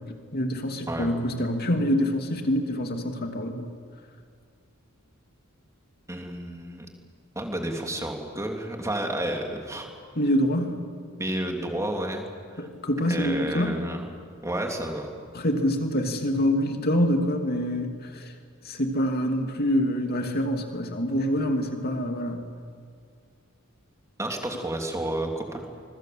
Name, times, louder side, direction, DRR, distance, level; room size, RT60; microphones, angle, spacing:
voice 1, 0.3-3.6 10.2-10.8 12.6-13.8 15.3-17.9 18.7-22.4, equal, 50° left, 4 dB, 2.7 m, -25 dB
voice 2, 6.1-6.9 7.3-9.9 11.2-12.3 12.6-12.7 13.1-14.1 14.4-15.1 24.2-25.6, right 1 dB, 15° right, 2 dB, 3.1 m, -31 dB
26.0 x 22.0 x 7.9 m, 2.1 s
head